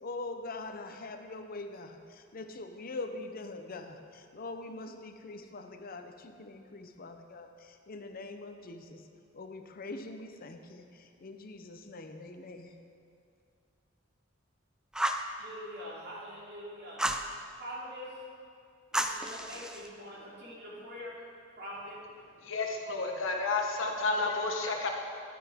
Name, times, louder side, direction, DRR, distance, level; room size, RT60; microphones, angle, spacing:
voice 1, 0.0-9.0 9.3-12.7, left 2 dB, 45° left, 6 dB, 0.6 m, -43 dB
Fire, 14.9-15.3 17.0-17.3 18.9-19.9, right 1 dB, 5° right, 0.4 m, -31 dB
voice 2, 15.4-17.0 17.6-18.1 18.9-21.2 21.6-22.0, equal, 60° right, -7 dB, 2.8 m, -44 dB
voice 3, 22.5-24.9, left 3 dB, 70° left, 2 dB, 1.1 m, -31 dB
11.5 x 9.1 x 3.6 m, 2.4 s
head